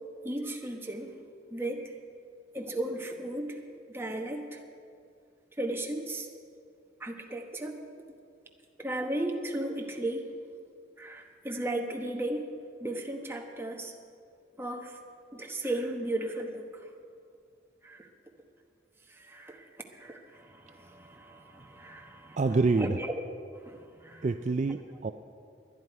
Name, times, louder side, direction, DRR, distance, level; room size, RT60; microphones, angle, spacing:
voice 1, 0.2-1.2 1.5-1.9 2.5-3.6 3.9-4.6 5.6-6.3 7.0-7.9 8.8-10.3 11.0-12.5 12.8-13.9 14.6-15.0 15.3-16.9 17.8-18.1 19.1-22.4 22.8-23.1 23.5-24.3 24.7-24.8, right 1 dB, 15° right, 2 dB, 1.1 m, -35 dB
voice 2, 22.4-23.0 24.2-25.1, right 3 dB, 40° right, 8 dB, 0.4 m, -26 dB
20.5 x 11.0 x 4.6 m, 2.4 s
head